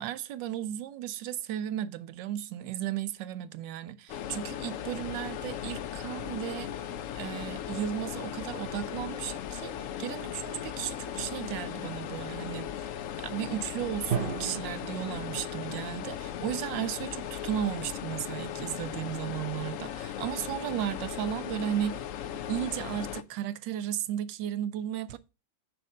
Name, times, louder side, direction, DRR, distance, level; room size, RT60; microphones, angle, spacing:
voice 1, 0.0-22.0 22.5-25.2, right 11 dB, 80° right, 1.3 m, -35 dB
sound 1, 4.1-23.2, left 10 dB, 85° left, 0.7 m, -37 dB
Drum, 14.1-16.0, right 8 dB, 55° right, 0.6 m, -35 dB
6.6 x 4.5 x 6.2 m
omnidirectional pair, 2.0 m